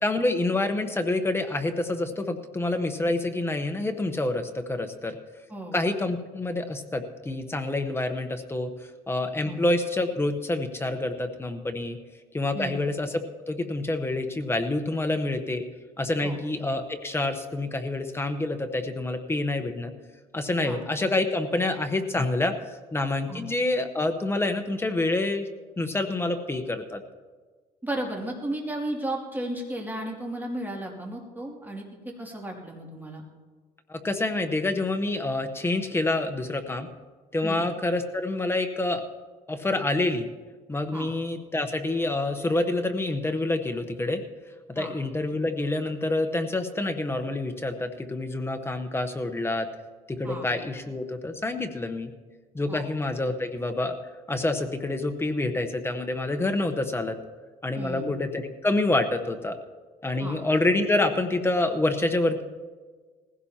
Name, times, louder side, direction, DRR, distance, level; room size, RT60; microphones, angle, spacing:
voice 1, 0.0-5.2 5.7-8.7 9.1-12.0 12.3-13.1 13.5-15.6 16.0-19.9 20.3-22.5 22.9-25.5 25.8-27.0 33.9-36.9 37.3-39.0 39.5-40.3 40.7-44.2 44.7-49.7 50.1-52.1 52.5-54.0 54.3-57.2 57.6-59.5 60.0-62.4, left 2 dB, 15° left, 6 dB, 1.0 m, -27 dB
voice 2, 5.5-5.8 9.4-9.6 12.5-12.8 16.2-16.4 20.6-20.8 23.3-23.4 27.8-33.2 37.4-37.6 40.9-41.1 44.7-44.9 50.2-50.5 52.7-52.9 57.7-58.2 60.2-60.4, right 1 dB, 10° right, -1 dB, 2.6 m, -34 dB
20.0 x 16.0 x 2.9 m, 1.5 s
cardioid pair, 110°, 17 cm